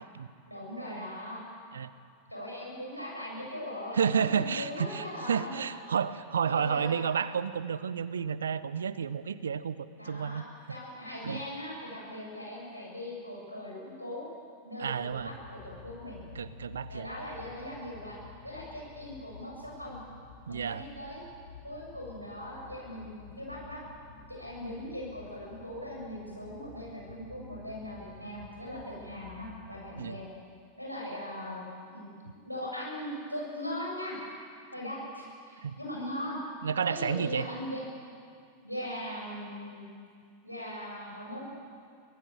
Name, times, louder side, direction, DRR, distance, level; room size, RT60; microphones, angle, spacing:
voice 1, 0.4-1.4 2.3-5.8 6.5-6.9 10.0-10.4 10.7-14.2 14.6-16.2 16.9-18.2 18.4-20.0 20.5-21.2 21.6-23.8 24.3-30.2 30.8-31.6 31.9-32.1 32.4-34.2 34.7-36.4 36.8-37.8 38.6-39.9 40.4-41.5, left 1 dB, 90° left, -4 dB, 7.8 m, -40 dB
voice 2, 3.9-10.4 11.2-11.4 14.8-15.3 16.3-17.1 20.5-20.8 30.0-30.2 35.6-35.8 36.6-37.5, right 7 dB, 70° right, 15 dB, 0.8 m, -31 dB
sound 1, 14.9-30.3, left 4 dB, 55° left, 5.6 m, -51 dB
24.5 x 18.5 x 7.6 m, 2.2 s
figure-of-eight pair, 90°, 0 cm